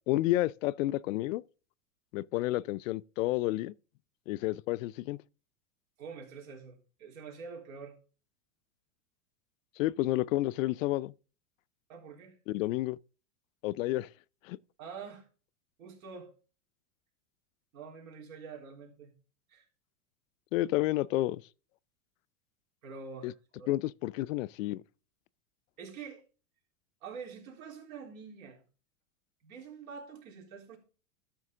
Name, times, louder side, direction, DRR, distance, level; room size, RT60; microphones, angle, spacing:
voice 1, 0.1-1.4 2.1-3.7 4.3-5.2 9.8-11.1 12.5-13.0 13.6-14.1 14.5-14.6 20.5-21.4 23.2-23.3 23.7-24.8, left 16 dB, 70° left, 0.5 m, -30 dB
voice 2, 6.0-8.0 11.9-12.4 14.8-15.3 15.8-16.3 17.7-19.1 19.5-19.7 22.8-23.7 25.8-26.2 27.0-28.6 29.4-30.8, right 5 dB, 80° right, 3.7 m, -46 dB
12.5 x 5.8 x 3.6 m
supercardioid pair, 145°, 41 cm